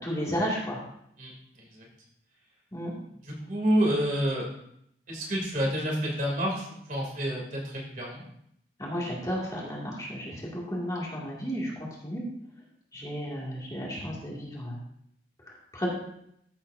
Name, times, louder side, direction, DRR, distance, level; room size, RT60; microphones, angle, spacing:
voice 1, 0.0-0.8 2.7-2.9 8.8-12.2 12.9-14.8 15.5-15.9, equal, 20° left, -4 dB, 2.2 m, -33 dB
voice 2, 3.2-4.4 5.1-8.2, equal, 45° right, -2 dB, 2.8 m, -28 dB
13.5 x 7.5 x 2.7 m, 0.73 s
head